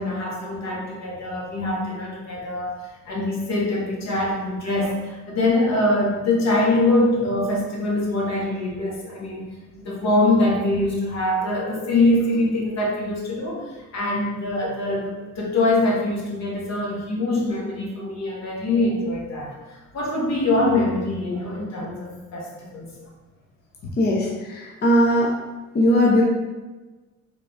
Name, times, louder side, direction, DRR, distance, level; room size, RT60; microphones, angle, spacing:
voice 1, 0.0-2.8 3.0-22.9, left 2 dB, 60° left, -3 dB, 1.1 m, -23 dB
voice 2, 24.0-25.3 25.7-26.2, equal, 35° left, -3 dB, 0.6 m, -19 dB
3.5 x 2.3 x 3.9 m, 1.2 s
cardioid pair, 90°, 30 cm